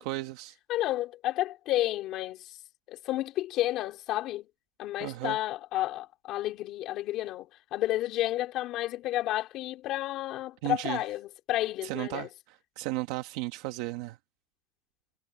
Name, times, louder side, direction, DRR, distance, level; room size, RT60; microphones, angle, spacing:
voice 1, 0.0-0.6 5.0-5.4 10.6-11.0 11.8-14.2, right 19 dB, 65° right, 1.2 m, -35 dB
voice 2, 0.7-2.4 2.9-4.5 4.8-7.5 7.7-12.3, left 15 dB, 45° left, 3.6 m, -31 dB
cardioid pair, 165°, 0 cm